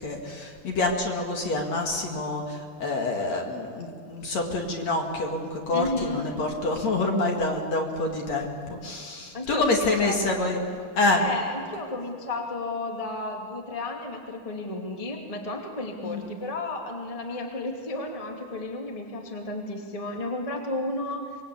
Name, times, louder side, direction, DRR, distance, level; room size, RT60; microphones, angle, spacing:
voice 1, 0.0-10.6 11.0-11.2 16.0-16.2, left 2 dB, 50° left, 1 dB, 3.1 m, -27 dB
voice 2, 5.7-6.2 9.3-10.4 11.2-21.4, left 2 dB, 10° left, 1 dB, 1.9 m, -33 dB
25.5 x 22.0 x 8.5 m, 2.1 s
omnidirectional pair, 4.5 m